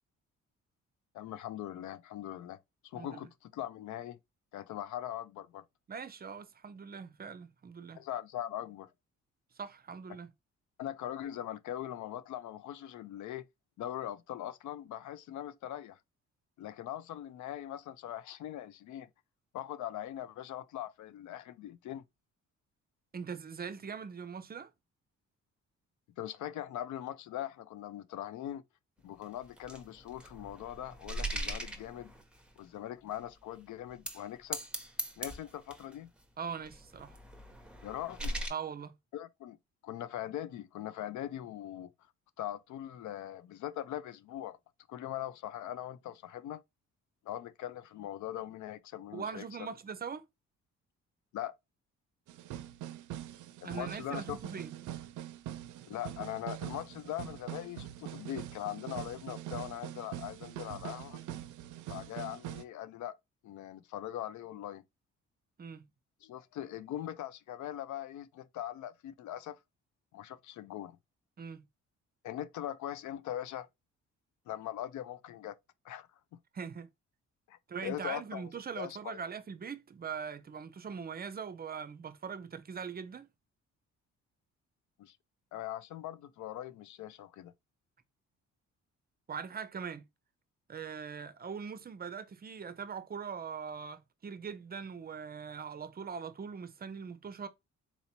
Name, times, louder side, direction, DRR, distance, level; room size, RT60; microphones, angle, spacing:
voice 1, 1.1-2.6 2.8-4.2 4.5-5.6 7.9-8.9 10.8-13.5 13.8-16.0 16.6-19.1 19.5-22.0 26.2-28.6 29.0-32.1 32.6-34.6 35.2-36.1 37.8-38.4 39.1-39.6 39.8-41.9 42.4-44.6 44.9-46.6 47.3-49.5 51.3-51.5 53.6-54.4 55.9-61.2 61.9-63.1 63.4-64.8 66.2-69.6 70.1-70.9 72.2-73.7 74.5-75.5 75.8-76.1 77.5-78.5 78.8-79.2 85.0-85.2 85.5-87.5, left 12 dB, 70° left, 0.5 m, -41 dB
voice 2, 5.9-8.0 9.6-10.3 23.1-24.7 36.4-37.2 38.5-38.9 49.1-50.2 53.6-54.7 65.6-65.9 71.4-71.6 76.5-76.9 77.7-83.3 89.3-90.0 90.7-97.5, right 6 dB, 30° right, 0.5 m, -41 dB
sound 1, 29.2-32.5 33.1-33.2 33.9-34.2 34.5-35.9 36.6-38.5, right 1 dB, 5° right, 0.8 m, -40 dB
sound 2, 52.3-62.6, right 12 dB, 85° right, 0.5 m, -43 dB
4.1 x 2.9 x 2.7 m
cardioid pair, 90°, 30 cm